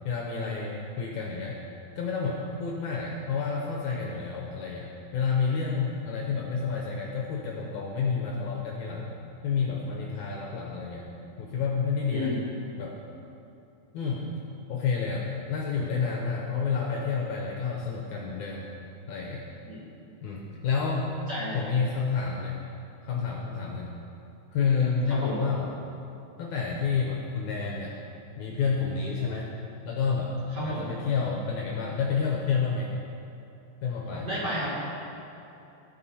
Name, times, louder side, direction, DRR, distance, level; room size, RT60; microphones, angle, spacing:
voice 1, 0.1-1.6 2.0-9.1 9.4-11.1 11.4-12.3 12.8-13.0 13.9-14.3 14.7-18.7 19.1-19.4 20.2-21.2 21.5-22.6 23.0-23.9 24.5-25.7 26.4-28.0 28.4-29.5 29.8-30.4 30.6-32.9 33.8-34.3, left 5 dB, 70° left, -1 dB, 1.9 m, -29 dB
voice 2, 12.1-12.5 19.7-19.8 21.3-21.6 25.1-25.4 30.5-30.9 34.1-34.8, equal, 35° right, -9 dB, 2.4 m, -32 dB
16.5 x 5.5 x 4.2 m, 2.8 s
omnidirectional pair, 4.0 m